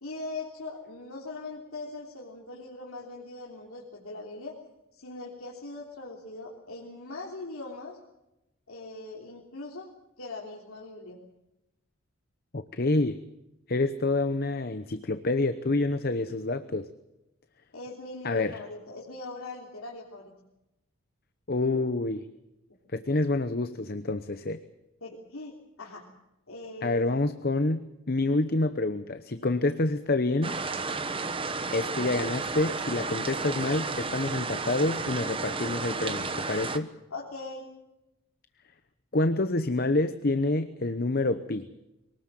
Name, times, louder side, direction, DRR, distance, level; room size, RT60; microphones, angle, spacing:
voice 1, 0.0-4.6 4.9-8.0 8.7-9.9 10.2-11.2 17.7-20.3 25.0-26.0 26.5-27.3 37.1-37.6, left 2 dB, 85° left, -2 dB, 3.3 m, -41 dB
voice 2, 12.5-13.2 13.7-16.9 18.2-18.6 21.5-22.3 22.9-24.6 26.8-30.6 31.7-36.9 39.1-41.7, left 2 dB, 45° left, 11 dB, 0.9 m, -27 dB
sound 1, 30.4-36.8, right 4 dB, 25° right, 1.1 m, -32 dB
23.5 x 19.0 x 7.6 m, 0.92 s
head